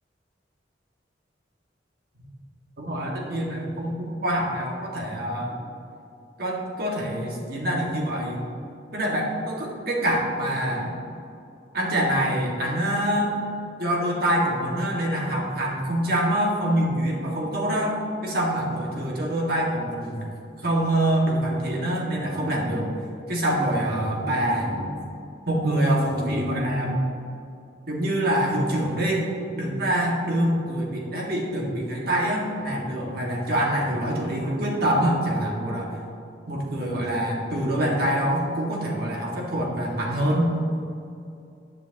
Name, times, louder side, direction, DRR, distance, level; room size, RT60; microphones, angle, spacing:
voice 1, 2.8-5.5 6.4-8.4 8.9-10.9 11.7-13.4 13.8-20.2 20.6-22.9 23.3-25.0 25.5-27.1 27.9-29.2 29.6-36.0 36.5-40.5, right 1 dB, 55° right, -2 dB, 1.9 m, -25 dB
10.5 x 9.9 x 2.9 m, 2.6 s
head